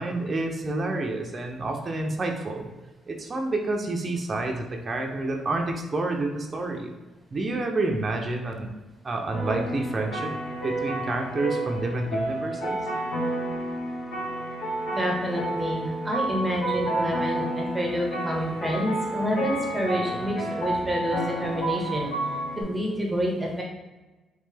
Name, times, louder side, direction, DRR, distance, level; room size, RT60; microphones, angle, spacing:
voice 1, 0.0-2.7 3.1-6.9 7.3-8.7 9.0-10.3 10.6-12.8, right 2 dB, 30° right, 2 dB, 0.6 m, -29 dB
sound 1, 9.3-22.6, right 1 dB, 75° left, 1.3 m, -30 dB
voice 2, 14.9-22.1 22.6-23.6, equal, 15° right, -1 dB, 1.0 m, -28 dB
3.6 x 3.2 x 3.3 m, 1.1 s
cardioid pair, 90°, 0 cm